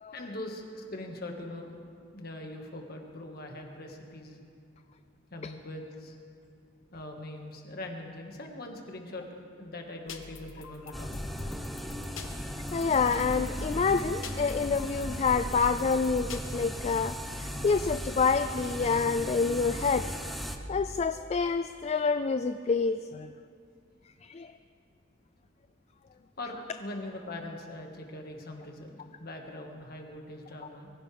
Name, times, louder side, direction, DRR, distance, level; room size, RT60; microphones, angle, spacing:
voice 1, 0.1-1.7 2.1-4.4 5.3-6.2 6.9-11.3 26.4-30.9, left 1 dB, 50° left, 2 dB, 1.8 m, -42 dB
sound 1, 10.1-16.4, left 2 dB, 80° left, 1.1 m, -42 dB
sound 2, 10.9-20.6, equal, ahead, 0.7 m, -37 dB
voice 2, 12.7-20.1 20.7-23.3 24.2-24.5, left 5 dB, 35° left, 10 dB, 0.3 m, -27 dB
23.5 x 15.5 x 3.5 m, 2.3 s
head